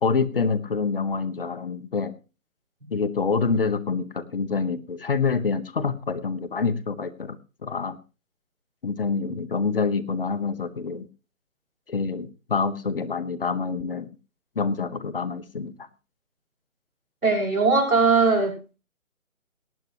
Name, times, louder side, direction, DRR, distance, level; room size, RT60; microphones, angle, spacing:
voice 1, 0.0-2.1 2.9-7.4 7.6-8.0 8.8-11.1 11.9-14.1 14.6-15.7, left 5 dB, 40° left, 14 dB, 0.9 m, -26 dB
voice 2, 17.2-18.6, right 4 dB, 85° right, 1 dB, 5.7 m, -20 dB
18.0 x 10.5 x 2.9 m, 0.31 s
figure-of-eight pair, 155°, 41 cm